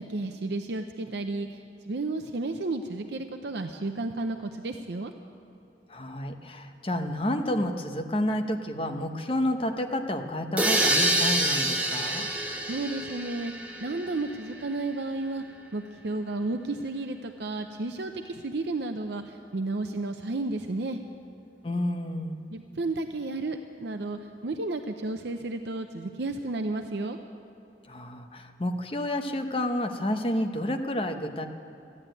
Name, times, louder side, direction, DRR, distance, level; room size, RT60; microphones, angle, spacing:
voice 1, 0.0-5.1 12.7-13.5 13.8-15.4 15.7-21.0 22.5-27.2, right 2 dB, 70° right, 6 dB, 0.6 m, -32 dB
voice 2, 5.9-12.3 21.6-22.4 27.9-31.5, left 1 dB, 30° left, 5 dB, 0.9 m, -30 dB
sound 1, 10.6-14.3, right 1 dB, 10° right, 1.0 m, -27 dB
13.5 x 9.8 x 9.0 m, 2.9 s
head